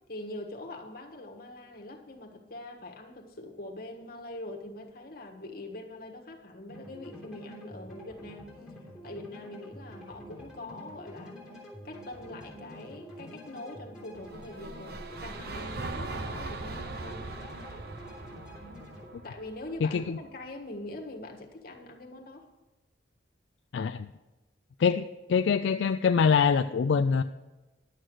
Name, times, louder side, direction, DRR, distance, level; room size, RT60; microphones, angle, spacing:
voice 1, 0.1-8.5 9.0-11.4 11.8-17.3 19.2-22.5, left 2 dB, 50° left, 2 dB, 1.5 m, -43 dB
sound 1, 6.7-19.1, equal, 5° right, 3.2 m, -47 dB
sound 2, 14.2-20.4, right 3 dB, 55° right, 0.7 m, -40 dB
voice 2, 23.7-24.1 24.8-25.0 25.3-27.2, left 6 dB, 75° left, 9 dB, 0.4 m, -24 dB
11.0 x 7.6 x 6.4 m, 1.1 s
head